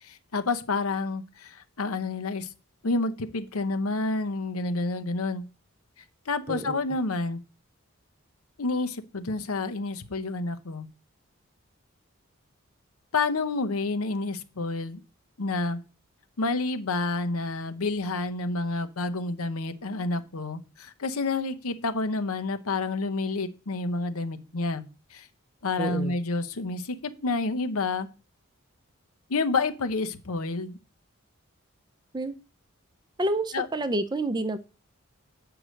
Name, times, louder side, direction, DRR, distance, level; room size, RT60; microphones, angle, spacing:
voice 1, 0.0-2.5 2.8-5.4 6.3-7.4 8.6-10.9 13.1-15.0 15.4-15.8 16.4-24.8 25.1-25.3 25.6-28.1 29.3-30.8 33.5-33.7, left 3 dB, 85° left, 0.8 m, -29 dB
voice 2, 6.5-6.8 25.8-26.1 32.1-32.3 33.2-34.6, right 2 dB, 20° right, 0.5 m, -28 dB
7.8 x 4.8 x 6.4 m
head